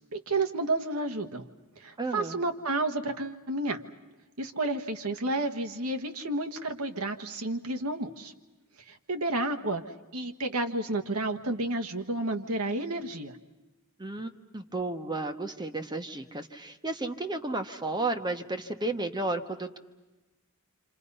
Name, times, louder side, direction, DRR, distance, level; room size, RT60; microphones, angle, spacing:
voice 1, 0.1-1.5 1.8-3.8 4.4-8.3 8.9-9.8 10.1-13.4, right 2 dB, 80° right, 6 dB, 1.5 m, -31 dB
voice 2, 2.0-2.4 14.0-19.8, right 2 dB, 20° right, 6 dB, 1.1 m, -33 dB
27.5 x 27.5 x 5.6 m, 1.1 s
head